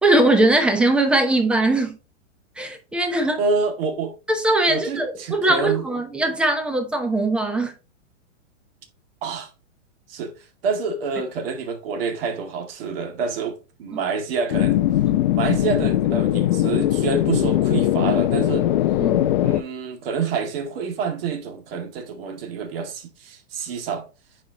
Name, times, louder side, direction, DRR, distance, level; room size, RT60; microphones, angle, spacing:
voice 1, 0.0-2.0 2.6-3.4 4.3-7.7 15.1-15.2 19.0-19.3, right 2 dB, 5° right, 0.7 m, -20 dB
voice 2, 3.4-4.1 4.7-5.8 9.2-9.5 10.1-10.3 10.6-14.8 15.3-18.7 19.4-24.0, right 5 dB, 50° right, 2.2 m, -27 dB
sound 1, 14.5-19.6, left 13 dB, 40° left, 0.6 m, -20 dB
9.2 x 4.9 x 2.9 m
hypercardioid pair, 160°, 38 cm